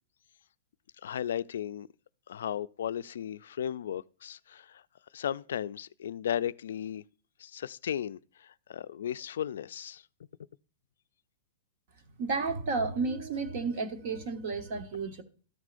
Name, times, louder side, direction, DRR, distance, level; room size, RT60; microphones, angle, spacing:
voice 1, 1.0-1.9 2.3-4.8 5.1-7.0 7.4-10.0, left 9 dB, 80° left, 0.3 m, -35 dB
voice 2, 12.2-15.2, right 4 dB, 40° right, 1.1 m, -32 dB
13.5 x 6.2 x 2.5 m
supercardioid pair, 175°, 0 cm